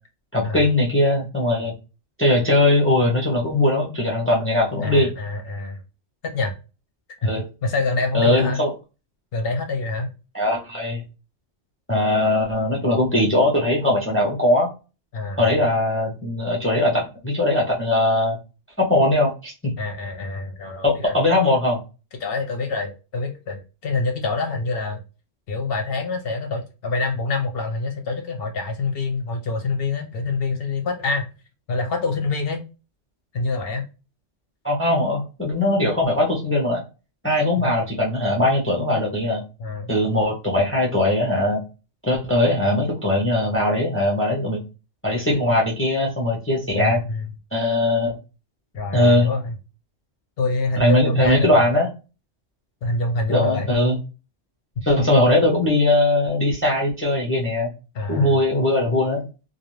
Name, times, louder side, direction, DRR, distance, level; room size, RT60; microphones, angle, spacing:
voice 1, 0.3-1.7 2.2-5.1 7.2-7.4 8.1-8.7 10.3-11.0 11.9-14.7 15.4-18.4 18.8-19.7 20.8-21.8 34.6-36.8 37.2-39.4 39.9-41.6 42.0-44.6 45.0-47.0 47.5-48.1 48.9-49.3 50.8-51.9 53.3-54.0 54.9-57.7 58.1-59.2, left 1 dB, 20° left, -3 dB, 0.4 m, -20 dB
voice 2, 4.8-5.8 6.2-6.5 7.2-7.3 7.6-8.6 9.3-10.1 15.1-15.5 19.8-21.1 22.2-25.0 25.5-31.3 31.7-32.6 33.3-33.9 37.6-37.7 39.6-39.9 46.8-47.3 48.7-49.6 50.4-51.7 52.8-53.7 54.8-54.9 57.9-58.4, left 3 dB, 60° left, 4 dB, 0.7 m, -26 dB
2.5 x 2.2 x 3.1 m, 0.31 s
omnidirectional pair, 1.3 m